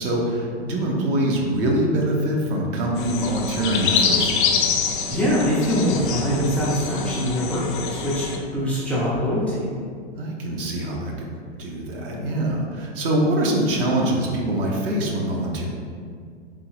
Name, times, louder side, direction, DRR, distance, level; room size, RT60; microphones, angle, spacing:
voice 1, 0.0-4.3 10.2-11.3 11.6-15.7, right 1 dB, 55° right, -1 dB, 0.9 m, -24 dB
sound 1, 3.0-8.4, left 6 dB, 50° left, 0.6 m, -25 dB
voice 2, 5.1-9.7, equal, 5° left, -9 dB, 0.4 m, -23 dB
3.7 x 2.9 x 3.0 m, 2.2 s
hypercardioid pair, 115°, 33 cm